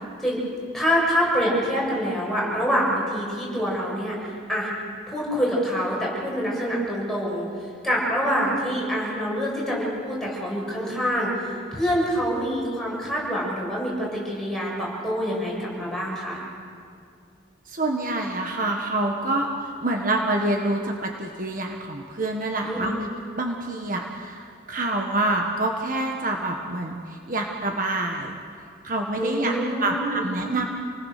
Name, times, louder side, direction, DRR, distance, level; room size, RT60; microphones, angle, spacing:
voice 1, 0.7-4.7 5.1-11.3 11.7-16.4 22.6-23.0 29.1-30.2, equal, ahead, -5 dB, 7.3 m, -26 dB
voice 2, 17.7-22.9 23.4-28.4 28.8-29.6 29.8-30.7, right 2 dB, 45° right, 2 dB, 1.6 m, -27 dB
29.0 x 20.0 x 6.7 m, 2.3 s
head